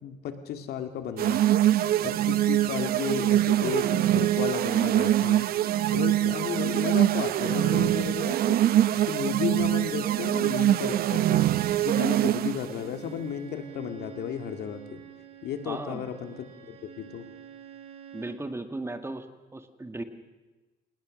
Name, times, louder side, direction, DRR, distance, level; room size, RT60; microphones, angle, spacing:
voice 1, 0.0-1.4 2.0-5.5 5.9-8.6 8.9-11.4 11.8-15.0 15.4-16.3 16.7-17.3, left 8 dB, 70° left, 7 dB, 2.2 m, -34 dB
sound 1, 1.2-12.7, right 12 dB, 65° right, 0.8 m, -24 dB
Bowed string instrument, 12.4-18.5, right 7 dB, 35° right, 2.8 m, -47 dB
voice 2, 15.6-16.0 18.1-19.3 19.5-20.0, right 2 dB, 15° right, 8 dB, 1.7 m, -36 dB
26.5 x 19.5 x 6.4 m, 1.2 s
cardioid pair, 110°, 17 cm